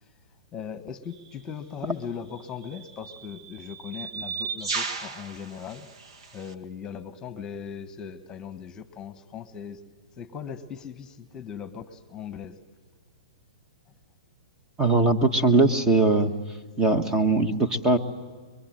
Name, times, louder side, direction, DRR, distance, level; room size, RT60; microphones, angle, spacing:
voice 1, 0.5-5.9 6.3-9.8 10.2-12.6, left 7 dB, 20° left, 10 dB, 1.4 m, -39 dB
sound 1, 1.1-1.3 2.3-6.5, right 4 dB, 60° right, 1.8 m, -36 dB
voice 2, 14.8-16.3 16.8-18.0, right 2 dB, 15° right, 9 dB, 1.4 m, -20 dB
25.5 x 23.5 x 7.8 m, 1.5 s
hypercardioid pair, 140°, 3 cm